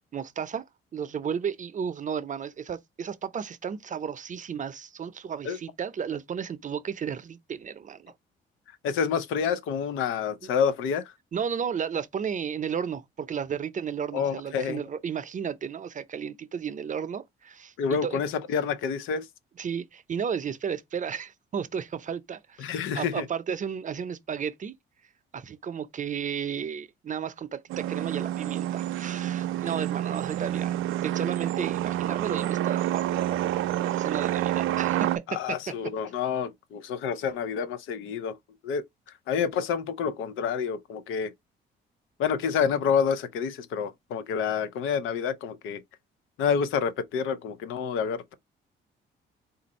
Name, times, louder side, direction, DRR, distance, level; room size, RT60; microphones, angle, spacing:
voice 1, 0.1-0.6 0.9-8.1 11.3-18.2 19.6-22.7 22.9-24.7 25.3-30.8 31.0-35.6, right 7 dB, 40° right, 0.6 m, -33 dB
voice 2, 8.8-11.1 14.1-14.8 17.8-19.3 22.6-23.2 35.3-38.4 38.6-38.8 39.3-41.3 42.2-45.8 46.4-48.3, left 7 dB, 90° left, 0.7 m, -28 dB
sound 1, 27.7-35.2, right 13 dB, 85° right, 0.5 m, -28 dB
3.9 x 2.6 x 4.1 m
cardioid pair, 90°, 20 cm